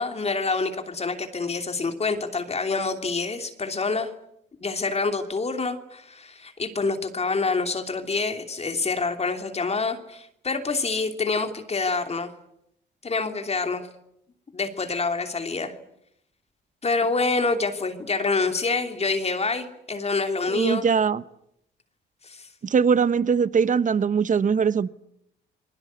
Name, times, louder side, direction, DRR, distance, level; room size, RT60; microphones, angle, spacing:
voice 1, 0.0-4.1 4.6-12.3 13.0-13.9 14.5-15.7 16.8-20.8 22.2-22.5, left 4 dB, 30° left, 6 dB, 2.9 m, -27 dB
voice 2, 20.5-21.2 22.6-24.9, right 6 dB, 40° right, 16 dB, 1.0 m, -21 dB
28.5 x 22.0 x 8.3 m, 0.77 s
cardioid pair, 90°, 20 cm